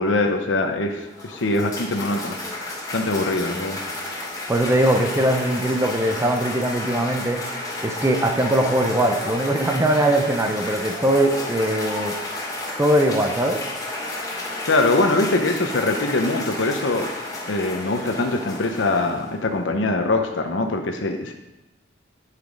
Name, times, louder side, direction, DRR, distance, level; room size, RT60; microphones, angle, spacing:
voice 1, 0.0-3.8 14.6-17.1 17.5-21.3, left 2 dB, 80° left, 4 dB, 0.8 m, -23 dB
Cheering / Applause, 0.9-19.5, left 2 dB, 20° left, 2.5 m, -32 dB
voice 2, 4.5-7.4 7.8-12.2 12.8-13.6, right 1 dB, 15° right, 3 dB, 0.7 m, -21 dB
10.0 x 5.9 x 5.2 m, 0.99 s
head